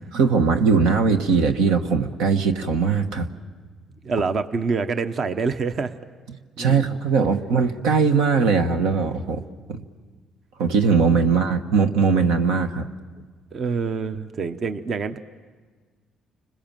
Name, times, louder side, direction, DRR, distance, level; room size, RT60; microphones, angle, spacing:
voice 1, 0.1-3.3 6.6-9.4 9.7-9.8 10.6-12.9, right 5 dB, 90° right, 6 dB, 1.2 m, -20 dB
voice 2, 4.0-6.0 6.6-7.0 13.5-15.2, right 4 dB, 50° right, 10 dB, 0.9 m, -26 dB
29.5 x 21.0 x 7.5 m, 1.4 s
cardioid pair, 80°, 0 cm